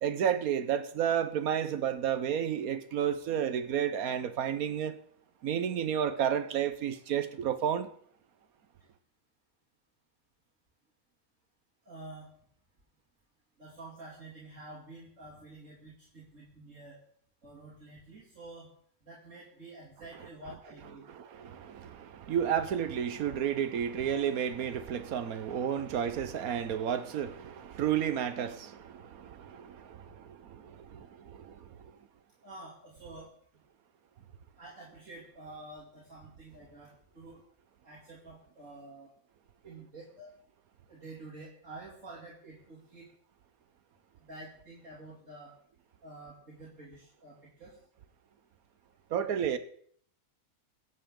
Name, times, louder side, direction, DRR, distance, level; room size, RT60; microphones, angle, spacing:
voice 1, 0.0-5.0 5.4-7.9 21.1-31.1 31.3-31.5 49.1-49.6, right 9 dB, 85° right, 1.4 m, -31 dB
voice 2, 11.8-12.3 13.6-17.0 17.4-18.7 19.0-21.0 32.4-33.3 34.6-37.4 37.8-39.1 39.6-40.3 40.9-43.1 44.2-45.5 46.0-47.8, right 2 dB, 60° right, 3.1 m, -49 dB
24.0 x 8.2 x 3.8 m
omnidirectional pair, 1.5 m